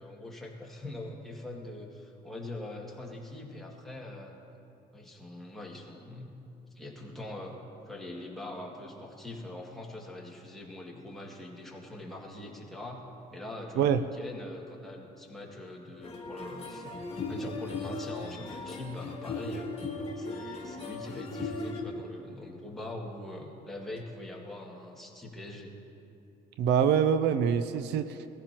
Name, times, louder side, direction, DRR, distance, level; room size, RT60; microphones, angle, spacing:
voice 1, 0.0-4.3 4.9-6.4 6.7-7.6 7.9-13.0 13.3-19.7 20.2-25.7, left 1 dB, ahead, -3 dB, 2.2 m, -43 dB
sound 1, 16.0-21.8, left 3 dB, 35° left, 2.0 m, -37 dB
voice 2, 26.6-28.3, right 8 dB, 85° right, 11 dB, 0.6 m, -25 dB
20.5 x 15.0 x 3.0 m, 2.7 s
cardioid pair, 110°, 17 cm